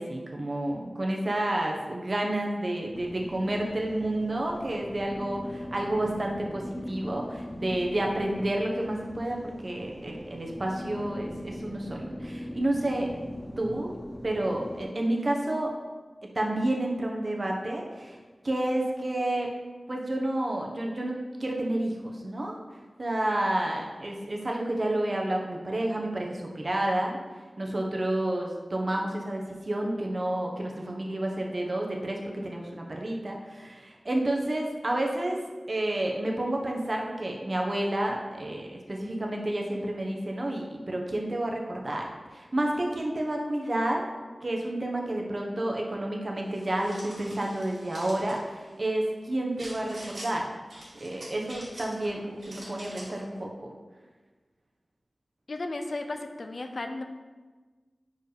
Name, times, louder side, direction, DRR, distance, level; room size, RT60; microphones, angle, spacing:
voice 1, 0.0-13.1 13.6-15.7 16.3-18.2 18.4-19.5 19.9-22.6 23.0-27.2 27.6-35.4 35.7-44.1 44.4-50.5 51.0-53.7, right 1 dB, 50° right, 0 dB, 1.1 m, -30 dB
sound 1, 2.9-14.9, equal, 10° left, 0.7 m, -40 dB
sound 2, 46.5-48.4 49.6-50.3 50.7-52.1 52.4-53.2, right 1 dB, 70° right, 2.1 m, -45 dB
voice 2, 55.5-57.0, left 2 dB, 60° left, 6 dB, 0.6 m, -34 dB
4.9 x 4.8 x 5.0 m, 1.3 s
cardioid pair, 45°, 0 cm